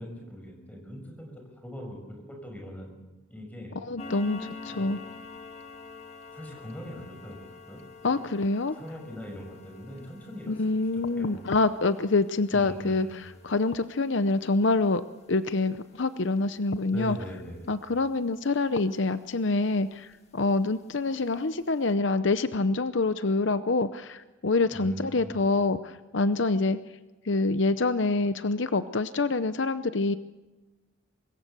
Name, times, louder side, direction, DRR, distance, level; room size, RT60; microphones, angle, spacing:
voice 1, 0.0-3.0 3.3-3.7 4.7-4.9 6.3-8.2 8.7-11.4 12.5-13.2 16.9-17.7 24.7-25.4, equal, 5° left, 2 dB, 6.4 m, -41 dB
voice 2, 3.8-5.0 8.0-8.8 10.5-13.1 13.4-15.0 15.3-17.2 17.7-26.8 27.3-30.2, left 3 dB, 65° left, 12 dB, 0.7 m, -26 dB
sound 1, 4.0-19.1 19.4-19.7 20.1-20.2 20.7-20.8 21.2-21.3 21.6-21.7, left 4 dB, 30° left, 2.1 m, -48 dB
25.0 x 21.0 x 6.9 m, 1.2 s
head